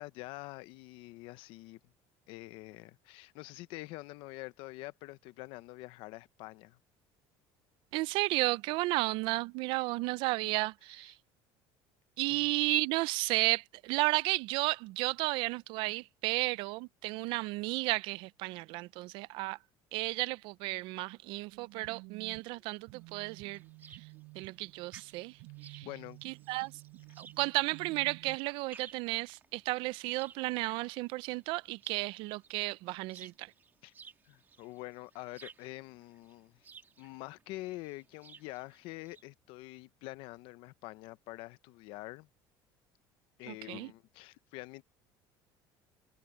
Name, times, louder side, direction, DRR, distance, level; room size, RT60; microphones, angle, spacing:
voice 1, 0.0-1.8 2.3-6.8 12.3-12.5 25.8-26.2 33.8-33.9 34.3-36.6 37.0-42.3 43.4-44.8, left 20 dB, 65° left, 0.8 m, -46 dB
voice 2, 7.9-11.2 12.2-19.6 19.9-23.6 23.9-24.1 24.3-25.9 26.2-26.7 27.2-33.5 43.5-43.9, right 22 dB, 65° right, 0.4 m, -33 dB
sound 1, 21.5-28.4, right 30 dB, 80° right, 7.0 m, -52 dB
sound 2, 22.6-39.2, right 5 dB, 20° right, 1.7 m, -58 dB
cardioid pair, 165°, 9 cm